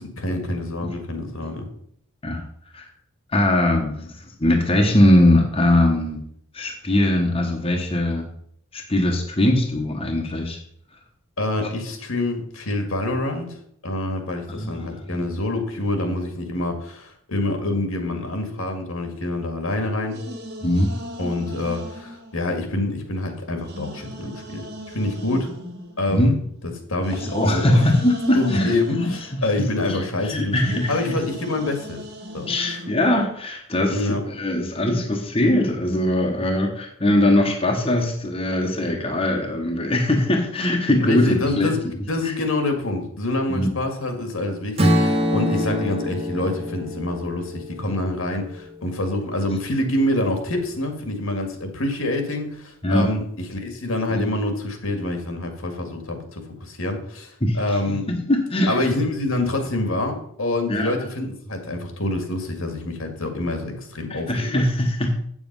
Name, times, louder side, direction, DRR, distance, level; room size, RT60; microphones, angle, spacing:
voice 1, 0.2-1.7 11.4-13.5 13.8-20.2 21.2-25.5 26.0-26.4 26.9-27.8 28.3-32.0 32.3-32.5 33.9-34.2 41.0-58.1 58.7-64.6, left 1 dB, 70° left, 5 dB, 2.0 m, -26 dB
voice 2, 3.3-6.2 6.5-8.3 8.7-10.6 11.6-11.7 14.6-15.3 20.6-20.9 26.1-26.4 27.2-31.0 32.5-41.7 42.2-42.3 43.5-43.7 52.8-53.1 54.1-54.3 57.4-58.8 60.7-60.9 64.1-65.1, left 1 dB, 25° left, 1 dB, 1.2 m, -21 dB
sound 1, 20.1-23.1 23.6-30.2 30.5-33.2, equal, 45° right, 1.7 m, -38 dB
Strum, 44.8-49.0, equal, 25° right, 1.6 m, -25 dB
8.6 x 7.3 x 5.4 m, 0.66 s
head